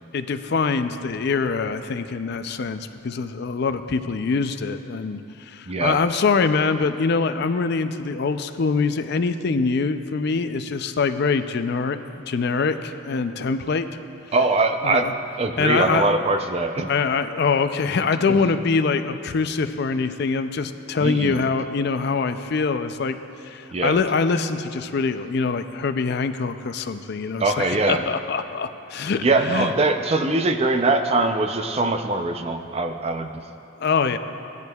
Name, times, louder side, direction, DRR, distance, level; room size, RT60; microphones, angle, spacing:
voice 1, 0.1-5.2 5.5-12.0 12.3-13.9 14.8-15.1 15.6-16.1 16.9-23.2 23.4-29.7 33.8-34.2, left 4 dB, 50° left, 9 dB, 0.4 m, -24 dB
voice 2, 5.7-6.0 14.3-15.1 15.4-16.9 18.3-18.4 21.0-21.4 23.7-24.0 27.4-28.1 29.2-33.4, right 3 dB, 30° right, 6 dB, 0.5 m, -22 dB
17.0 x 10.5 x 2.3 m, 2.9 s
head